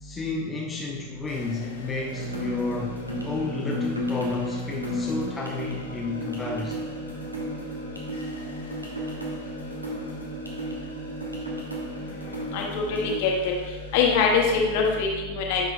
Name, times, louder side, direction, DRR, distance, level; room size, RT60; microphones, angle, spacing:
voice 1, 0.0-2.9 3.2-6.9, left 3 dB, 15° left, -1 dB, 0.6 m, -32 dB
sound 1, 1.3-15.0, left 2 dB, 70° left, 1.6 m, -45 dB
sound 2, 2.1-13.2, left 1 dB, 90° right, 1.2 m, -33 dB
voice 2, 12.5-13.5 13.9-15.7, left 5 dB, 50° left, 0 dB, 1.3 m, -23 dB
10.0 x 5.8 x 2.3 m, 1.2 s
figure-of-eight pair, 90°, 0 cm